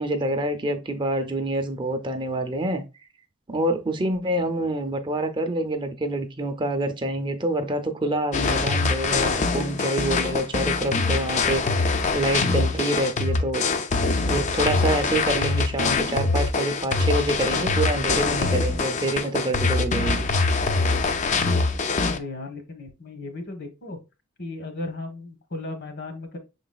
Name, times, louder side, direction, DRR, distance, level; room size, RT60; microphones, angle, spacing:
voice 1, 0.0-2.8 3.5-13.6 14.2-20.3, right 1 dB, 25° right, 0.5 m, -26 dB
sound 1, 8.3-22.2, left 3 dB, 35° left, 0.4 m, -24 dB
voice 2, 22.1-24.0 24.4-26.4, left 2 dB, 55° left, 1.1 m, -35 dB
6.0 x 3.9 x 2.3 m
head